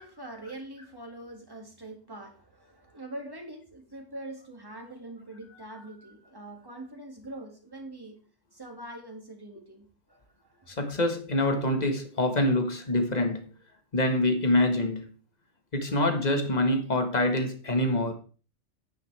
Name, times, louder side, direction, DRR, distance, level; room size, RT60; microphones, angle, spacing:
voice 1, 0.0-8.2 8.5-10.7, right 1 dB, 20° right, 2.2 m, -43 dB
voice 2, 10.7-13.5 13.9-15.1 15.7-18.1, left 1 dB, 35° left, 1.7 m, -25 dB
10.5 x 9.4 x 3.4 m
omnidirectional pair, 1.2 m